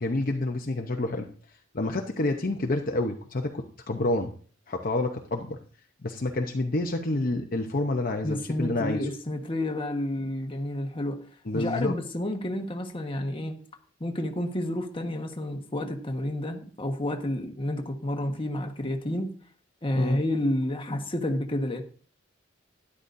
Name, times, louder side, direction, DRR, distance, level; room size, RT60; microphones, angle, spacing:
voice 1, 0.0-1.3 1.7-4.3 4.7-5.6 6.0-9.0 11.5-11.9 20.0-20.2, left 2 dB, 45° left, 0.8 m, -28 dB
voice 2, 8.2-11.2 11.5-13.6 14.0-19.3 19.8-21.8, left 1 dB, 25° left, 1.3 m, -30 dB
12.5 x 11.0 x 2.6 m
head